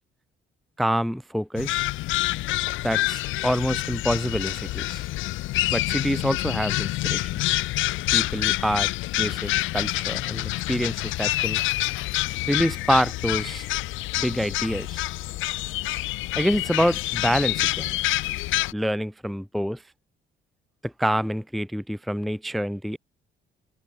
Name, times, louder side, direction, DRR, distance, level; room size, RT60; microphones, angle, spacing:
voice 1, 0.8-1.9 2.8-5.1 5.7-7.3 8.1-8.9 9.2-11.6 12.5-13.7 14.2-15.0 16.4-18.0 18.7-19.8 20.8-23.0, equal, ahead, 0.5 m, -26 dB
sound 1, 1.6-18.7, left 18 dB, 85° left, 0.4 m, -27 dB
open air
cardioid pair, 90°, 20 cm